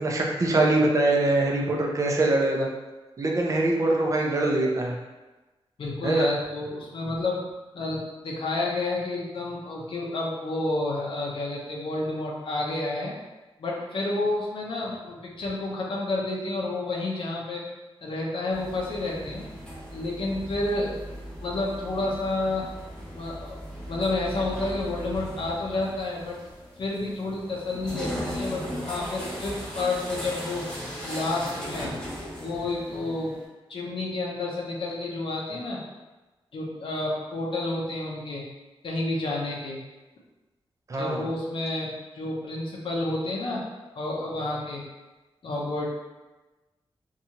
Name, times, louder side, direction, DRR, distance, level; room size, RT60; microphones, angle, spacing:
voice 1, 0.0-2.7 3.2-5.0 6.0-6.3 40.9-41.2, right 2 dB, 35° right, -1 dB, 0.4 m, -23 dB
voice 2, 5.8-7.4 7.7-13.1 13.6-17.6 18.0-19.4 19.9-21.0 21.4-22.7 23.1-23.6 23.9-26.4 26.8-30.7 31.0-31.9 32.4-33.4 33.7-35.8 36.5-38.5 38.8-39.8 41.0-43.6 44.0-44.8 45.4-45.9, left 2 dB, 60° left, -4 dB, 0.5 m, -30 dB
sound 1, 18.5-33.4, equal, 10° left, 1.0 m, -38 dB
2.7 x 2.3 x 2.8 m, 1.1 s
wide cardioid pair, 180°, 10 cm